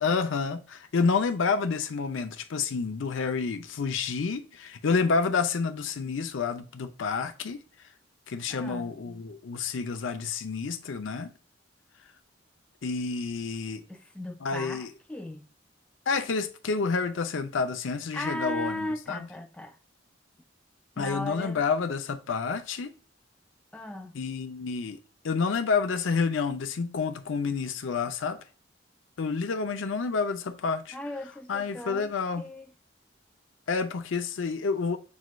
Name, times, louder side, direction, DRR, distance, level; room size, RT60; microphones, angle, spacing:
voice 1, 0.0-7.6 8.3-11.3 12.8-13.8 14.4-14.9 16.1-19.3 21.0-22.9 24.1-25.0 25.2-28.4 29.2-31.0 31.5-32.4 33.7-35.0, left 5 dB, 85° left, 0.5 m, -29 dB
voice 2, 8.5-9.2 13.9-15.5 18.1-19.8 21.0-21.6 23.7-24.1 30.9-32.1 32.4-32.7, left 1 dB, 5° left, 0.3 m, -37 dB
6.2 x 2.3 x 3.0 m
head